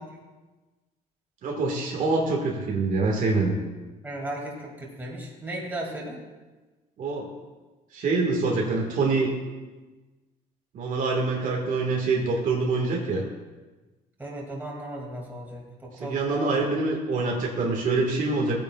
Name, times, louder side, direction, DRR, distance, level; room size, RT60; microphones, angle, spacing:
voice 1, 1.4-3.5 7.0-7.3 7.9-9.3 10.7-13.2 16.0-18.6, right 3 dB, 55° right, -1 dB, 1.6 m, -25 dB
voice 2, 4.0-6.2 14.2-16.7, right 1 dB, 10° right, -2 dB, 2.3 m, -36 dB
16.0 x 9.1 x 2.3 m, 1.2 s
cardioid pair, 120°, 16 cm